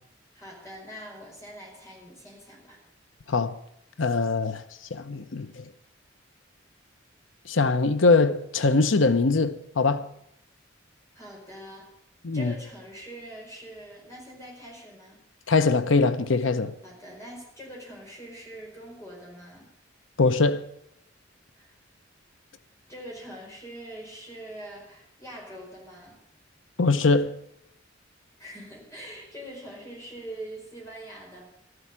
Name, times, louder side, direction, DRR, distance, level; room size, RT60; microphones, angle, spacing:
voice 1, 0.3-2.8 11.1-11.9 12.3-15.2 16.8-19.7 21.5-21.7 22.9-26.2 28.4-31.4, right 1 dB, 15° left, 4.8 m, -43 dB
voice 2, 4.0-4.6 4.9-5.6 7.5-10.1 12.2-12.5 15.5-16.7 20.2-20.6 26.8-27.3, left 3 dB, 80° left, 0.8 m, -22 dB
13.0 x 7.9 x 9.6 m
head